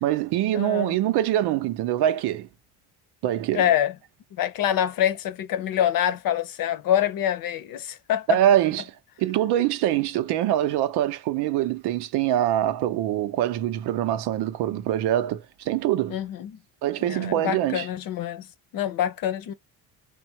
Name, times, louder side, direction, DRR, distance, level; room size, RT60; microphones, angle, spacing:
voice 1, 0.0-2.5 3.2-3.7 8.3-16.2 16.8-17.9, right 12 dB, 80° right, 0.7 m, -24 dB
voice 2, 0.5-1.0 3.5-3.9 4.3-8.4 16.1-16.6 17.0-18.5 18.7-19.5, left 11 dB, 60° left, 0.8 m, -25 dB
3.6 x 2.2 x 4.3 m
cardioid pair, 115°, 39 cm